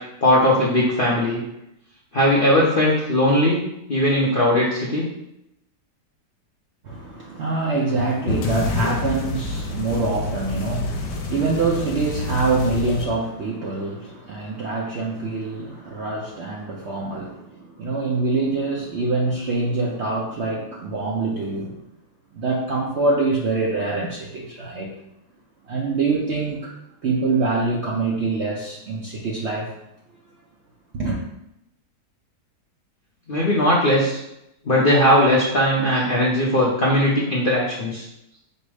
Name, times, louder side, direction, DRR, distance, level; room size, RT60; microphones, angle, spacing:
voice 1, 0.2-1.4 2.1-3.6 3.9-5.1 33.3-34.2 34.7-38.0, left 1 dB, 55° left, -5 dB, 0.6 m, -19 dB
voice 2, 6.8-21.7 22.3-24.9 25.6-26.7 27.0-29.7 30.9-31.2, right 3 dB, 60° right, -3 dB, 0.7 m, -25 dB
sound 1, 8.0-13.1, left 2 dB, 75° left, 1.2 m, -28 dB
5.1 x 2.0 x 4.8 m, 0.83 s
omnidirectional pair, 1.8 m